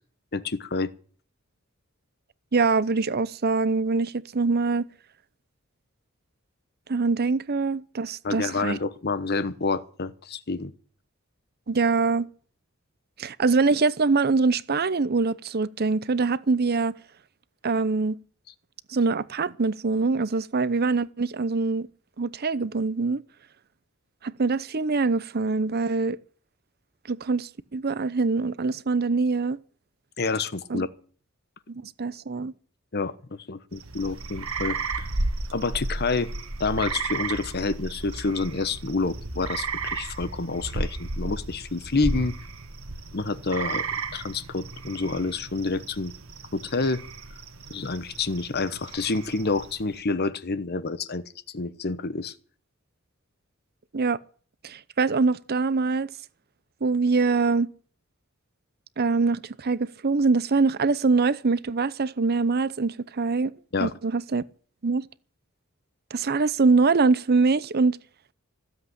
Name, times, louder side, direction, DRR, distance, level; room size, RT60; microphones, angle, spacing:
voice 1, 0.3-0.9 8.2-10.7 30.2-30.9 32.9-33.1 33.5-35.1 35.5-36.3 36.6-42.3 43.1-43.8 44.1-46.1 46.5-47.0 47.7-52.3 63.7-63.9, left 3 dB, 50° left, 1.1 m, -28 dB
voice 2, 2.5-4.8 6.9-8.8 11.7-12.3 13.2-17.0 17.6-18.2 18.9-21.9 22.2-23.2 24.2-26.2 27.1-29.6 30.7-30.9 31.7-32.5 53.9-54.2 54.6-56.1 56.8-57.7 59.0-63.5 63.8-64.4 64.8-65.0 66.1-68.0, right 4 dB, 50° right, 0.7 m, -24 dB
sound 1, 33.7-50.0, right 3 dB, 75° right, 1.6 m, -34 dB
15.5 x 8.1 x 9.9 m
head